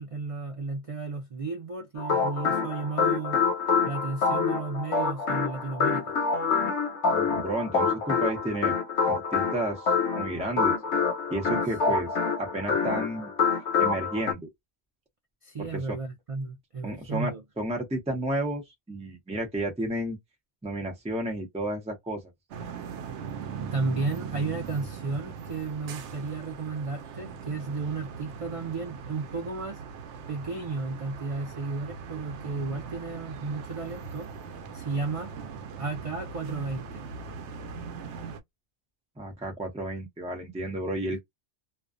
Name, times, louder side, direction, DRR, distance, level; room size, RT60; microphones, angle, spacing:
voice 1, 0.0-3.4 3.8-6.1 11.9-12.0 15.4-17.4 23.6-29.8 30.3-34.3 34.7-35.3 35.8-37.0, right 3 dB, 65° right, 0.3 m, -33 dB
sound 1, 2.0-14.3, left 5 dB, 80° left, 1.0 m, -26 dB
voice 2, 7.1-8.7 9.1-9.9 10.2-10.7 11.3-12.1 12.4-13.3 13.8-14.4 15.6-16.0 16.8-18.6 18.9-20.2 20.6-22.2 39.2-41.2, right 1 dB, 5° right, 0.6 m, -32 dB
sound 2, 22.5-38.4, right 6 dB, 80° right, 0.9 m, -40 dB
2.4 x 2.2 x 2.4 m
omnidirectional pair, 1.2 m